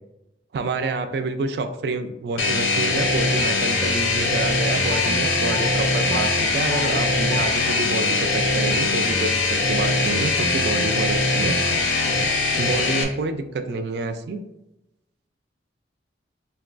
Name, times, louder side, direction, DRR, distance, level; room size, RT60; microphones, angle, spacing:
voice 1, 0.5-11.6 12.6-14.4, right 3 dB, 60° right, 7 dB, 0.3 m, -28 dB
sound 1, 2.4-13.0, left 3 dB, 90° left, 0.6 m, -22 dB
sound 2, 4.9-5.1 5.5-5.7 6.1-6.3 6.7-6.9 7.3-7.5, left 6 dB, 30° left, 0.4 m, -32 dB
4.5 x 2.2 x 2.4 m, 0.91 s
head